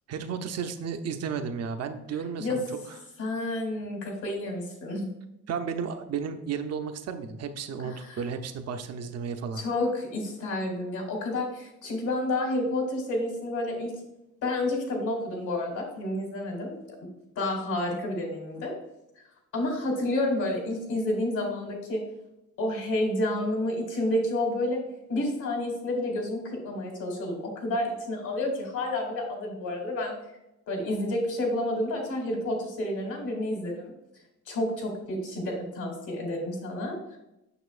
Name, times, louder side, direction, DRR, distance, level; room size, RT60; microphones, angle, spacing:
voice 1, 0.1-2.6 5.5-9.6, right 6 dB, 55° right, 7 dB, 0.7 m, -33 dB
voice 2, 3.2-5.1 7.8-8.2 9.5-13.9 14.4-16.8 17.4-18.7 19.5-22.0 22.6-24.8 25.1-30.1 30.7-33.9 34.5-37.2, left 1 dB, 85° left, 0 dB, 2.3 m, -30 dB
6.9 x 6.0 x 2.4 m, 0.90 s
cardioid pair, 90°, 30 cm